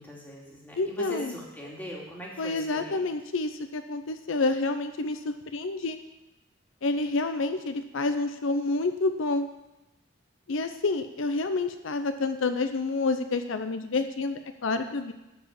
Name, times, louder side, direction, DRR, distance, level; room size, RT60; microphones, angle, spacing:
voice 1, 0.0-3.0, equal, 10° left, -4 dB, 2.4 m, -40 dB
voice 2, 0.8-1.3 2.4-6.0 6.8-9.5 10.5-15.1, left 3 dB, 75° left, 8 dB, 0.6 m, -28 dB
12.5 x 4.8 x 7.5 m, 0.97 s
head